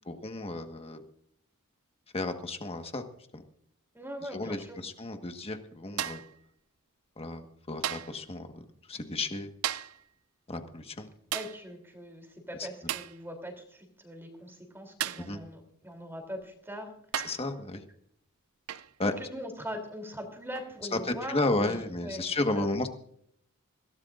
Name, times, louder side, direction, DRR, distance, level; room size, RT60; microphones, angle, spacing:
voice 1, 0.1-1.0 2.1-3.0 3.3-3.4 4.2-6.2 7.2-9.5 10.5-11.1 12.6-12.7 15.2-15.4 17.2-17.8 19.0-19.1 20.9-22.9, left 2 dB, 25° left, 6 dB, 1.5 m, -33 dB
voice 2, 3.9-4.8 11.3-16.9 19.0-22.2 22.5-22.7, equal, 10° right, 3 dB, 3.2 m, -41 dB
sound 1, 6.0-6.4 7.8-8.2 9.6-10.0 11.3-11.6 12.9-13.2 15.0-15.4 16.4-16.5 17.1-17.5 18.7-18.9 20.6-20.8, right 11 dB, 75° right, 0.5 m, -35 dB
21.5 x 17.0 x 2.5 m, 0.67 s
head